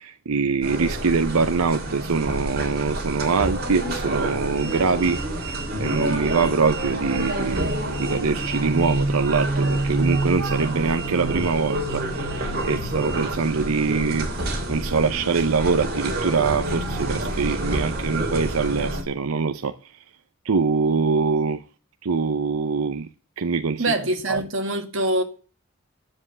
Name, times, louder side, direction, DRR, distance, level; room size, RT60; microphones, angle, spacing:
voice 1, 0.0-7.7 8.0-14.3 14.7-19.7 20.5-21.6 22.0-23.1 23.4-23.9 24.3-24.4, right 4 dB, 90° right, 0.7 m, -23 dB
sound 1, 0.6-19.0, right 1 dB, 45° right, 3.1 m, -27 dB
voice 2, 23.8-25.2, right 1 dB, 65° right, 2.1 m, -24 dB
10.0 x 7.7 x 9.3 m
head